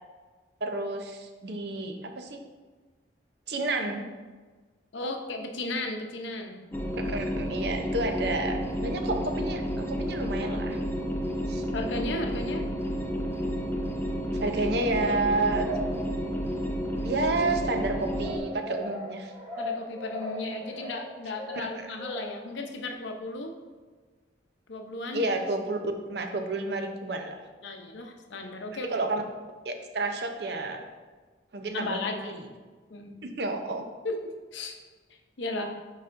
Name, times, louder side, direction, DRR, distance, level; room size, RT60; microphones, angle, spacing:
voice 1, 0.6-2.4 3.5-4.0 7.1-10.8 11.5-11.6 14.4-15.7 17.0-19.3 21.5-21.9 25.1-25.8 26.1-27.4 28.9-29.2 29.6-30.8 31.5-32.4 33.2-33.8, right 2 dB, 60° right, 5 dB, 0.6 m, -30 dB
voice 2, 4.9-6.6 11.7-12.7 19.6-23.5 24.7-25.3 27.6-29.0 31.7-32.4 32.9-33.2 34.0-34.2 34.5-34.8 35.4-35.7, left 2 dB, 80° left, 4 dB, 0.7 m, -35 dB
sound 1, 6.7-18.4, equal, 10° left, 0.5 m, -31 dB
sound 2, 15.5-16.5 17.3-22.5, equal, 10° right, 1.5 m, -38 dB
9.4 x 4.1 x 2.6 m, 1.4 s
head